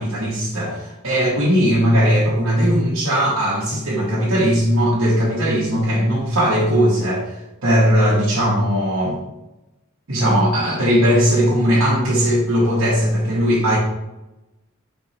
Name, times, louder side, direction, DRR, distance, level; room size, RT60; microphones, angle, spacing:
voice 1, 0.0-7.3 7.6-9.2 10.1-13.8, equal, 75° right, -7 dB, 1.0 m, -18 dB
3.9 x 3.0 x 4.0 m, 0.97 s
head